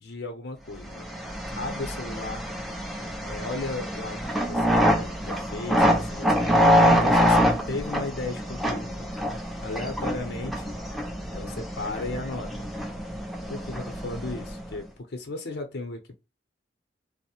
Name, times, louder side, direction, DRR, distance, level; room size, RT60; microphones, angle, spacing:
voice 1, 0.0-1.1 1.6-2.4 3.2-4.2 4.5-9.1 9.6-10.8 11.3-12.7 13.5-16.2, left 2 dB, 60° left, 0.6 m, -35 dB
sound 1, 0.9-14.7, equal, ahead, 0.4 m, -25 dB
2.7 x 2.0 x 2.9 m
head